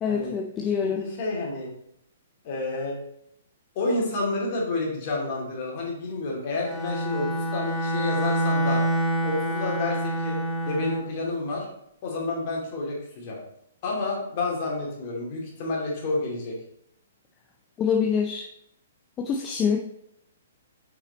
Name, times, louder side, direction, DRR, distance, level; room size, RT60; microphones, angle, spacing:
voice 1, 0.0-1.0 17.8-18.5 19.2-19.8, left 6 dB, 20° left, 2 dB, 0.6 m, -25 dB
voice 2, 0.8-1.7 2.4-3.0 3.7-8.8 9.2-10.4 10.7-11.7 12.0-13.4 13.8-16.6, left 2 dB, 45° left, -2 dB, 2.6 m, -29 dB
Bowed string instrument, 6.6-11.1, right 1 dB, 10° right, 1.0 m, -27 dB
5.9 x 5.0 x 4.1 m, 0.75 s
hypercardioid pair, 145°, 0 cm